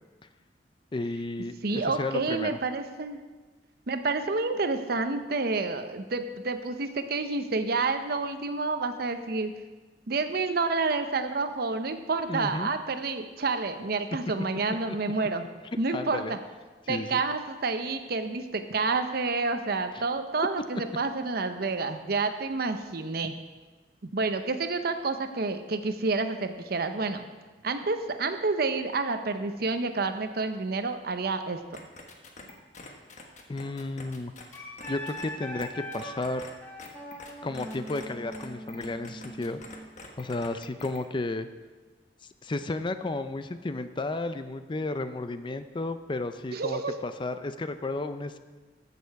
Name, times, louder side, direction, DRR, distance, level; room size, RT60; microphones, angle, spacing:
voice 1, 0.9-2.6 12.3-12.7 14.9-15.0 15.9-16.3 16.9-17.2 19.9-20.0 33.5-34.3 34.9-36.5 37.4-39.6 40.2-41.5 42.4-48.4, left 2 dB, 30° left, 10 dB, 0.5 m, -33 dB
voice 2, 1.6-3.2 3.9-9.5 10.1-15.5 15.8-16.4 16.9-23.4 24.1-27.3 27.6-31.8 46.5-46.9, right 3 dB, 60° right, 8 dB, 0.7 m, -29 dB
sound 1, 31.7-35.3 35.6-35.7 35.9-36.5 36.8-38.1 38.3-41.0, left 3 dB, 45° left, 1.2 m, -45 dB
Wind instrument woodwind instrument, 34.5-39.9, equal, 10° left, 1.4 m, -41 dB
14.0 x 6.9 x 4.7 m, 1.3 s
head